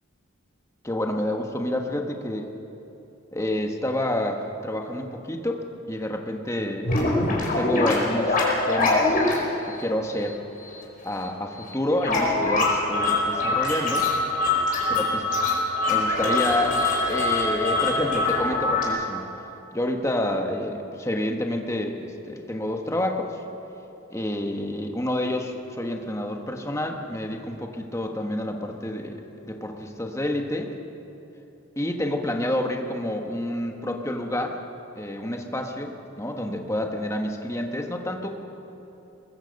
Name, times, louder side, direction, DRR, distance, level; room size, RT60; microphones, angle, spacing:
voice 1, 0.8-2.5 3.3-5.6 5.9-6.9 7.4-8.4 8.7-10.4 11.0-14.1 14.9-15.3 15.9-16.8 17.1-19.3 19.7-23.4 24.1-30.7 31.8-34.6 35.0-38.4, left 1 dB, 15° left, 3 dB, 1.4 m, -28 dB
sound 1, 6.8-9.3 9.7-9.8 10.1-10.3 10.7-10.8 11.1-11.2 11.6-11.7 12.0-18.9, left 2 dB, 40° left, 4.6 m, -23 dB
23.0 x 21.0 x 5.4 m, 3.0 s
head